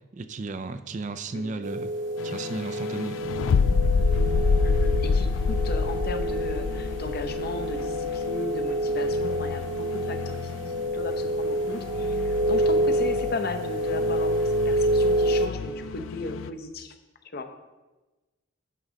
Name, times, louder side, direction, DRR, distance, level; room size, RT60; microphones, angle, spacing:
voice 1, 0.1-1.9 2.2-3.3, right 3 dB, 40° right, 11 dB, 0.4 m, -34 dB
sound 1, 1.6-15.5, right 1 dB, 65° right, 0.8 m, -28 dB
sound 2, 2.2-16.5, left 4 dB, 80° left, 0.4 m, -29 dB
voice 2, 4.6-16.9 17.3-17.5, left 2 dB, 50° left, 7 dB, 0.7 m, -36 dB
11.0 x 3.9 x 6.3 m, 1.2 s
head